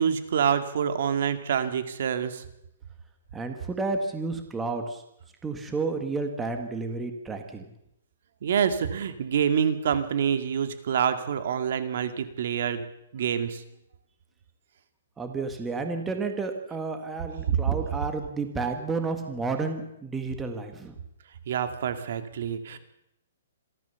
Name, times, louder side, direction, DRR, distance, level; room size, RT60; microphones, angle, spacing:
voice 1, 0.0-2.4 8.4-12.9 13.1-13.6 21.5-22.8, right 8 dB, 60° right, 9 dB, 2.1 m, -26 dB
voice 2, 3.3-5.0 5.4-7.7 15.2-20.9, right 3 dB, 10° right, 6 dB, 1.6 m, -31 dB
27.0 x 13.5 x 7.1 m, 0.83 s
hypercardioid pair, 160°, 0 cm